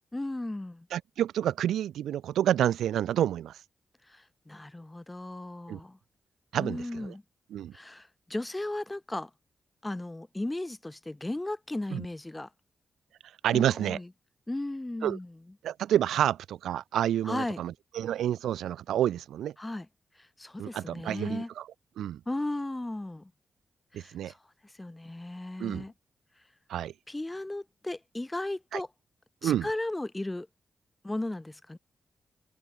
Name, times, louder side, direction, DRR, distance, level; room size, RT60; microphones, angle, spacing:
voice 1, 0.1-0.9 4.1-6.0 6.5-7.2 7.7-9.3 9.8-12.5 13.5-14.1 14.5-15.4 17.3-17.6 19.6-19.9 20.2-21.5 22.3-23.3 23.9-24.4 24.6-25.9 27.1-28.9 29.4-30.5 31.0-31.8, left 1 dB, 20° left, 1.5 m, -36 dB
voice 2, 0.9-3.6 5.7-5.8 6.5-7.1 7.5-7.7 11.9-12.0 13.4-14.0 15.0-15.2 15.6-19.5 20.6-21.7 22.0-22.2 23.9-24.3 25.6-25.8 26.7-26.9 28.7-28.8 29.4-29.7, right 11 dB, 85° right, 1.1 m, -29 dB
supercardioid pair, 45°, 0 cm